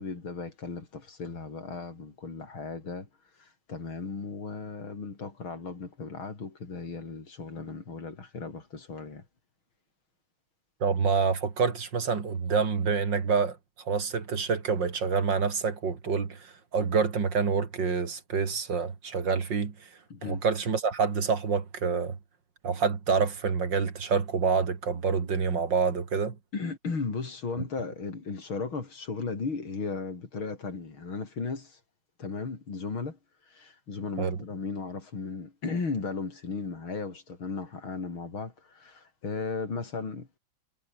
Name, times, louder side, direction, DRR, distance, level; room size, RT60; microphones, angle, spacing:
voice 1, 0.0-3.1 3.4-9.2 20.1-20.4 26.5-31.8 32.2-33.2 33.5-40.4, left 4 dB, 85° left, 4.9 m, -36 dB
voice 2, 10.8-13.6 13.8-19.7 20.2-22.2 22.6-26.4 34.2-34.4, right 5 dB, 65° right, 3.2 m, -27 dB
omnidirectional pair, 2.2 m